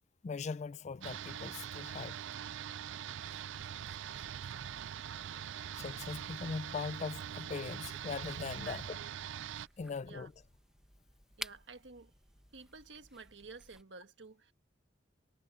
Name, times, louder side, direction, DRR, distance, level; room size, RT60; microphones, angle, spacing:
voice 1, 0.2-2.2 5.8-8.8 9.8-10.3, left 5 dB, 40° left, 0.4 m, -40 dB
sound 1, 1.0-9.7, right 9 dB, 85° right, 0.4 m, -43 dB
sound 2, 3.2-13.8, right 1 dB, 5° right, 1.2 m, -55 dB
voice 2, 8.4-9.1 10.0-10.3 11.4-12.1 12.5-14.5, right 4 dB, 70° right, 1.6 m, -52 dB
head